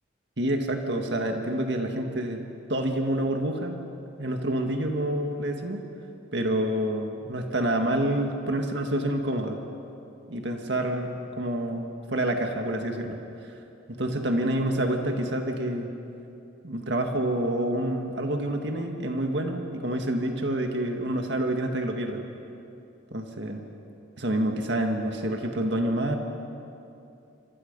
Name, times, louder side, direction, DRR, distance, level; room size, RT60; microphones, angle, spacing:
voice 1, 0.4-2.4 2.7-3.8 4.2-5.8 6.3-9.6 10.3-13.2 13.4-13.5 13.9-15.9 16.6-22.2 23.1-23.6 24.2-26.2, right 1 dB, 65° right, 3 dB, 1.9 m, -28 dB
28.0 x 26.0 x 5.5 m, 2.7 s
head